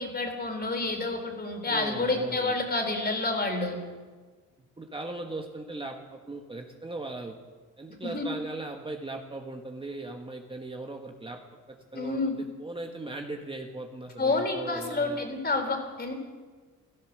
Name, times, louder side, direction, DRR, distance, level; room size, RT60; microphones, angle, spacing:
voice 1, 0.0-3.8 8.0-8.3 11.9-12.4 14.2-16.1, left 3 dB, 30° left, 3 dB, 3.9 m, -29 dB
voice 2, 1.7-2.5 4.8-7.4 7.8-15.2, right 2 dB, 15° right, 3 dB, 1.4 m, -38 dB
16.5 x 13.0 x 6.6 m, 1.4 s
cardioid pair, 90°, 30 cm